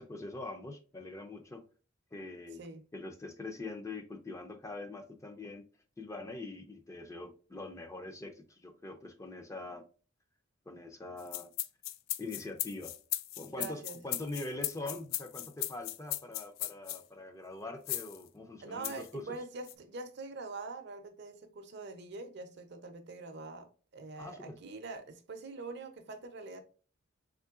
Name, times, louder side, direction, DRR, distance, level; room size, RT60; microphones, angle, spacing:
voice 1, 0.0-1.6 2.1-2.6 2.9-5.6 6.0-9.8 10.7-11.5 12.2-12.9 13.4-19.4 24.2-24.6, left 2 dB, 15° left, 0.4 m, -43 dB
sound 1, 11.2-17.0 17.9-18.2 18.8-19.1 19.7-19.8, left 14 dB, 85° left, 0.3 m, -37 dB
voice 2, 13.5-14.0 18.6-26.6, right 3 dB, 55° right, 0.5 m, -44 dB
3.7 x 3.0 x 2.3 m
head